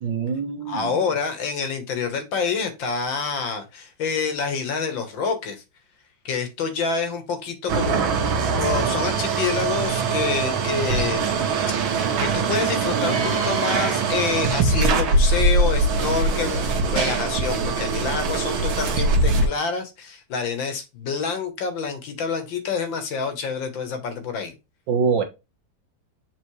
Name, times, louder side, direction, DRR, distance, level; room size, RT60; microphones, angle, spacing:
voice 1, 0.0-1.0 24.9-25.2, right 5 dB, 65° right, 1.7 m, -24 dB
voice 2, 0.7-5.6 6.3-8.0 8.6-11.5 12.2-24.5, left 5 dB, 70° left, 1.9 m, -27 dB
sound 1, 7.7-19.5, right 3 dB, 90° right, 2.0 m, -22 dB
7.5 x 4.3 x 3.1 m
omnidirectional pair, 2.2 m